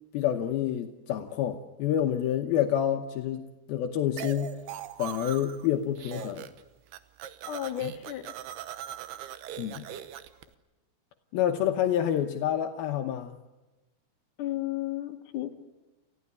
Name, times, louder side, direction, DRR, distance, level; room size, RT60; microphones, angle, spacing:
voice 1, 0.1-4.5 5.0-6.5 9.6-9.9 11.3-13.4, left 10 dB, 75° left, 5 dB, 2.8 m, -28 dB
sound 1, 4.2-5.7 6.0-6.6 6.9-10.4, right 11 dB, 85° right, 3.1 m, -40 dB
voice 2, 7.5-8.3 14.4-15.5, left 14 dB, 60° left, 4 dB, 2.9 m, -33 dB
29.5 x 15.0 x 9.8 m, 1.1 s
omnidirectional pair, 4.5 m